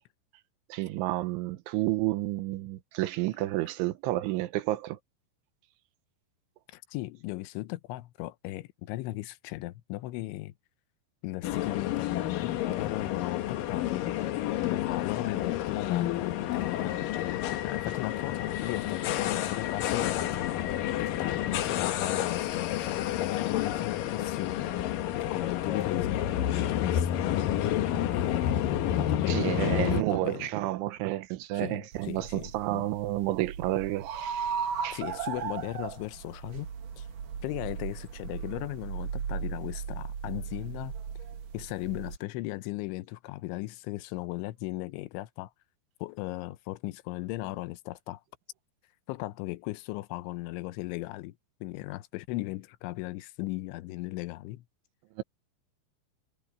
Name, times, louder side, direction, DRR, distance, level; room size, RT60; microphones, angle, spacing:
voice 1, 0.7-5.0 29.3-35.0 55.2-55.3, right 16 dB, 90° right, 3.5 m, -30 dB
voice 2, 6.7-10.5 11.2-14.1 14.6-24.8 25.2-27.8 28.1-30.5 31.5-32.9 34.9-36.7 37.0-37.1 37.4-40.9 41.5-45.5 46.0-48.2 49.1-51.4 51.6-54.6, left 18 dB, 85° left, 3.2 m, -37 dB
sound 1, 11.4-30.0, left 11 dB, 70° left, 2.3 m, -30 dB
sound 2, 31.9-42.2, right 7 dB, 55° right, 3.0 m, -37 dB
omnidirectional pair, 5.3 m